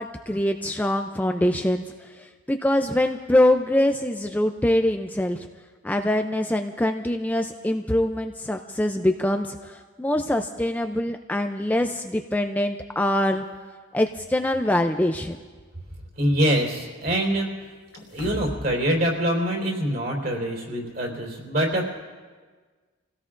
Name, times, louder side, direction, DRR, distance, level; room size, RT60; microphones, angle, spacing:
voice 1, 0.0-5.5 5.8-13.4 13.9-15.4, left 1 dB, 10° left, 5 dB, 0.4 m, -24 dB
voice 2, 16.2-17.5 17.9-22.0, equal, 50° right, 0 dB, 4.1 m, -24 dB
sound 1, 17.9-18.8 19.2-19.3, equal, 60° left, 1.7 m, -36 dB
29.0 x 17.0 x 2.5 m, 1.4 s
head